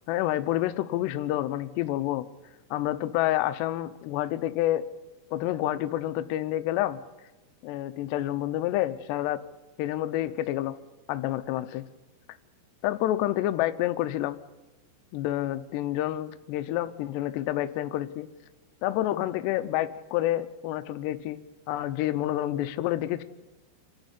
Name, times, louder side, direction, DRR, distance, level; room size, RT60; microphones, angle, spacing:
voice 1, 0.1-2.3 2.7-4.8 5.3-7.0 7.6-9.4 9.8-10.8 11.1-11.8 12.8-14.4 15.1-18.3 18.8-21.4 21.7-23.2, left 14 dB, 80° left, 11 dB, 2.5 m, -28 dB
27.5 x 10.5 x 9.9 m, 1.1 s
omnidirectional pair, 5.8 m